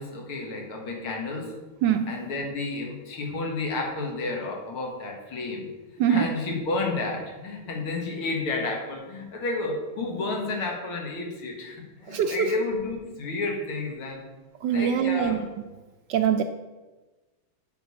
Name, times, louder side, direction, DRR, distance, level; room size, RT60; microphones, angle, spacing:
voice 1, 0.0-1.5 2.1-5.7 6.1-14.2 14.7-15.4, left 3 dB, 90° left, 1 dB, 2.5 m, -31 dB
voice 2, 1.8-2.3 6.0-6.4 12.1-12.6 14.6-15.4 16.1-16.4, right 8 dB, 75° right, 7 dB, 1.0 m, -24 dB
9.1 x 4.6 x 7.1 m, 1.2 s
omnidirectional pair, 2.3 m